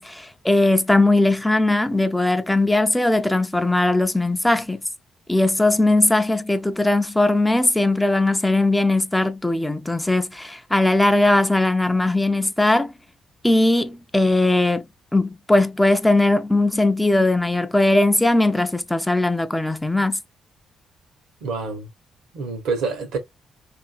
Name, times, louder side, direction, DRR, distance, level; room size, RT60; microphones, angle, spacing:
voice 1, 0.0-4.8 5.3-12.9 13.4-14.8 15.1-20.2, left 2 dB, 10° left, 0.4 m, -19 dB
voice 2, 21.4-21.9 22.3-23.2, right 4 dB, 80° right, 1.0 m, -27 dB
2.6 x 2.5 x 2.4 m
hypercardioid pair, 50°, 0 cm